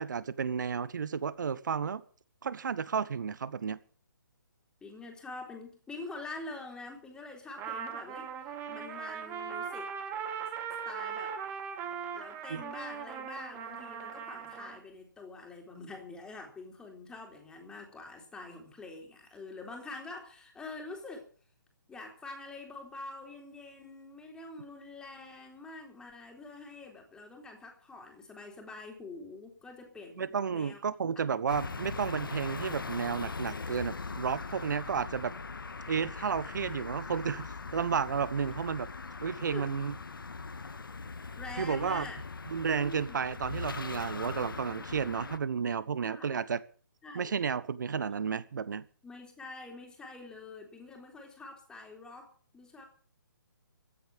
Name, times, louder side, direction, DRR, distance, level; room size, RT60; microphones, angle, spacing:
voice 1, 0.0-2.0 2.4-3.8 12.5-12.6 30.2-35.3 35.9-37.5 37.7-38.9 39.2-39.9 41.6-42.1 42.5-46.6 47.1-48.9, right 6 dB, 60° right, 17 dB, 1.2 m, -32 dB
voice 2, 4.8-9.9 10.9-11.4 12.1-21.3 21.9-30.8 31.2-31.3 39.5-39.7 41.4-42.2 42.7-43.3 46.0-46.4 47.0-47.4 49.0-52.9, left 3 dB, 5° left, 3 dB, 3.7 m, -46 dB
Trumpet, 7.6-14.8, right 7 dB, 20° right, 2.0 m, -39 dB
sound 1, 31.5-45.4, left 4 dB, 75° left, 1.6 m, -40 dB
15.0 x 10.0 x 7.2 m, 0.42 s
figure-of-eight pair, 140°, 12 cm